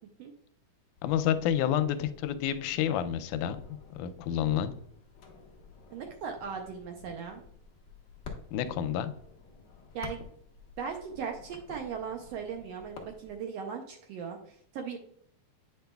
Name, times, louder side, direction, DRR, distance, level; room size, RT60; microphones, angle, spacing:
sound 1, 0.9-13.4, left 5 dB, 60° left, 1.1 m, -51 dB
voice 1, 1.0-4.7 8.5-9.1, left 10 dB, 90° left, 11 dB, 2.1 m, -29 dB
voice 2, 5.9-7.4 9.9-10.2 10.8-15.0, right 6 dB, 75° right, 4 dB, 1.5 m, -38 dB
8.9 x 5.3 x 2.3 m, 0.65 s
omnidirectional pair, 3.5 m